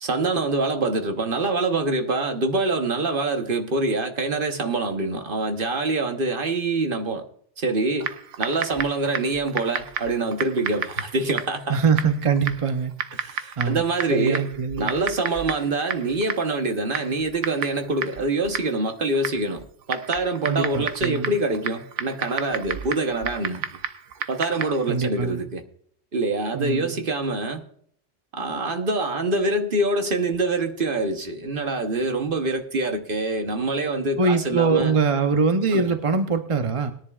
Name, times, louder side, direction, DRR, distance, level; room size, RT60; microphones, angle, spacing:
voice 1, 0.0-7.2 7.6-8.1 8.4-11.8 13.1-14.5 14.8-23.6 24.3-25.6 26.1-27.6 28.3-35.0 35.7-35.9, right 2 dB, 50° right, 1.2 m, -25 dB
Typing, 8.0-24.9, right 8 dB, 90° right, 1.1 m, -33 dB
voice 2, 11.7-12.9 13.6-13.8 14.1-14.9 20.5-21.3 24.9-25.4 26.5-27.0 34.2-36.9, right 5 dB, 30° right, 0.7 m, -23 dB
20.5 x 10.5 x 2.4 m
omnidirectional pair, 1.2 m